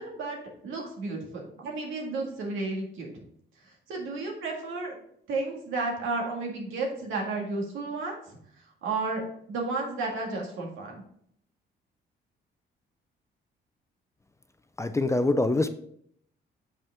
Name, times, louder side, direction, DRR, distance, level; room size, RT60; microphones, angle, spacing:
voice 1, 0.0-3.1 3.6-5.0 5.3-8.2 8.8-11.0, right 3 dB, 85° right, 0 dB, 1.9 m, -32 dB
voice 2, 14.8-15.7, left 2 dB, 15° left, 10 dB, 0.5 m, -24 dB
7.0 x 5.3 x 3.6 m, 0.67 s
cardioid pair, 90°, 20 cm